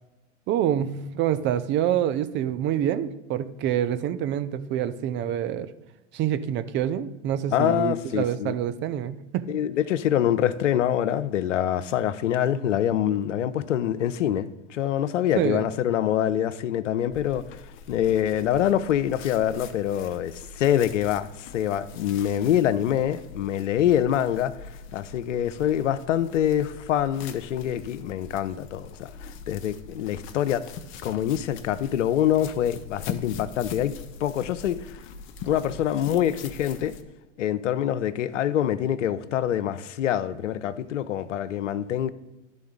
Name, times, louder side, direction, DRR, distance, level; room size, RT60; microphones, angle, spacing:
voice 1, 0.5-5.7 6.1-9.4 15.3-15.6, right 10 dB, 30° right, 0.5 m, -26 dB
voice 2, 7.5-8.5 9.5-17.5 17.9-24.5 24.9-30.6 31.0-33.9 34.2-35.0 35.4-37.0 37.4-42.1, left 10 dB, 85° left, 0.6 m, -25 dB
sound 1, 17.1-37.0, left 5 dB, 35° left, 0.6 m, -42 dB
11.5 x 3.9 x 3.7 m
hypercardioid pair, 105°, 36 cm